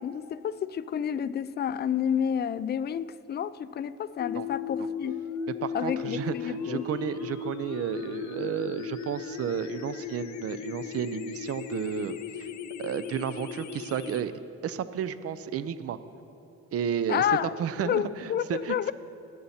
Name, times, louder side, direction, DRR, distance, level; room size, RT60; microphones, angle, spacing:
voice 1, 0.0-5.2 5.7-6.8 17.1-17.5 17.8-18.9, left 9 dB, 35° left, 14 dB, 0.4 m, -30 dB
sound 1, 4.2-14.2, left 6 dB, 70° left, 0.8 m, -36 dB
voice 2, 5.6-12.5 12.8-14.3 14.6-16.0 16.7-17.3 17.6-18.9, right 8 dB, 50° right, 13 dB, 0.6 m, -32 dB
20.0 x 8.4 x 4.3 m, 2.8 s
cardioid pair, 90°, 30 cm